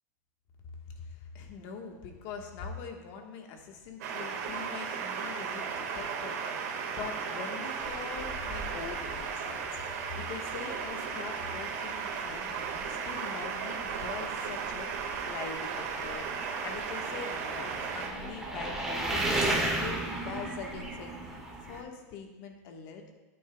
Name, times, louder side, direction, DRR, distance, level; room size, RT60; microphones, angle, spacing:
voice 1, 0.9-16.3 16.6-21.4 21.6-23.0, left 5 dB, 50° left, 3 dB, 1.4 m, -43 dB
sound 1, 4.0-18.1, right 6 dB, 70° right, 1.7 m, -36 dB
sound 2, 7.8-21.8, right 2 dB, 5° right, 1.6 m, -37 dB
13.0 x 8.3 x 2.3 m, 1.2 s
supercardioid pair, 145°, 9 cm